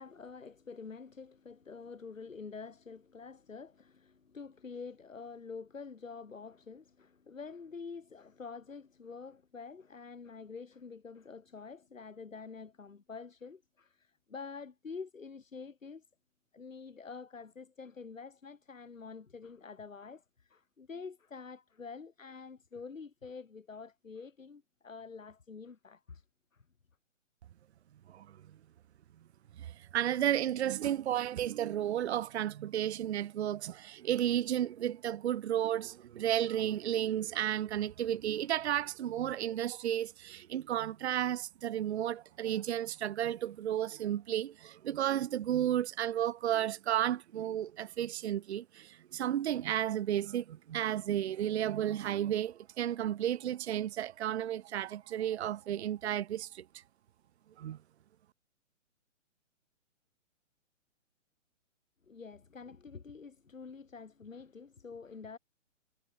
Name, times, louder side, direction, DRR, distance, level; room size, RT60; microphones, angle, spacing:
voice 1, 0.0-16.0 16.5-26.2 26.5-26.6 62.1-65.4, left 5 dB, 85° left, 5.4 m, -47 dB
voice 2, 29.6-56.8 57.6-57.8, right 11 dB, 55° right, 0.8 m, -33 dB
hypercardioid pair, 140°, 38 cm